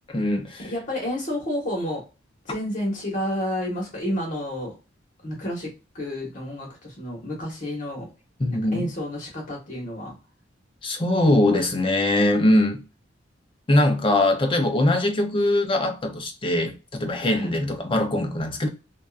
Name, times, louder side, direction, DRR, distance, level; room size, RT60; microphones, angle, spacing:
voice 1, 0.1-0.7 8.4-8.9 10.8-12.8 13.7-18.7, left 1 dB, 30° left, 0.5 m, -22 dB
voice 2, 0.6-2.0 2.5-4.7 5.2-5.7 5.9-8.1 8.5-10.1 17.2-17.5, equal, 45° left, 1.1 m, -30 dB
2.7 x 2.2 x 2.3 m
head